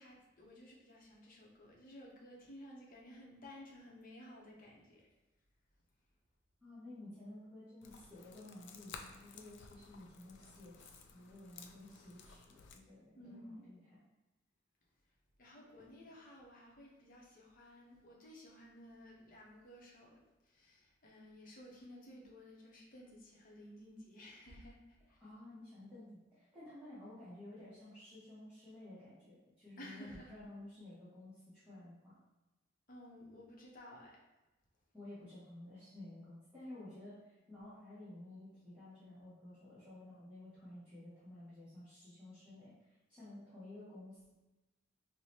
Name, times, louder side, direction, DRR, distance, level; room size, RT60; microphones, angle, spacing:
voice 1, 0.0-5.1 13.2-13.7 15.4-25.2 29.8-30.3 32.9-34.2, left 1 dB, 45° left, -2 dB, 0.7 m, -55 dB
voice 2, 6.6-13.8 25.2-32.2 34.9-44.3, left 1 dB, 5° right, -12 dB, 0.9 m, -53 dB
sound 1, 7.8-12.8, left 5 dB, 60° left, 0.3 m, -55 dB
4.8 x 2.1 x 2.8 m, 1.1 s
head